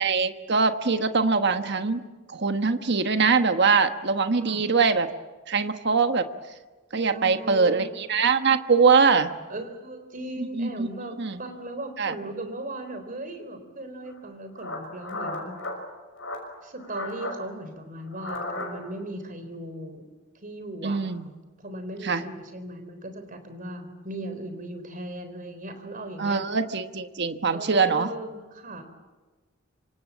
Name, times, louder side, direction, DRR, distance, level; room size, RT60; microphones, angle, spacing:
voice 1, 0.0-2.0 2.3-5.1 5.5-6.3 6.9-9.3 10.4-10.9 11.2-11.4 12.0-12.1 20.8-21.3 22.0-22.2 26.2-28.1, right 5 dB, 60° right, 8 dB, 1.3 m, -23 dB
voice 2, 7.1-7.9 9.5-15.6 16.6-20.1 20.4-21.0 21.6-26.4 27.5-28.8, right 1 dB, 45° right, 8 dB, 3.9 m, -37 dB
sound 1, 14.1-14.2 14.6-15.8 16.2-16.5 16.8-17.4 18.1-19.0, left 2 dB, 70° left, 6.1 m, -35 dB
26.5 x 25.5 x 7.4 m, 1.3 s
head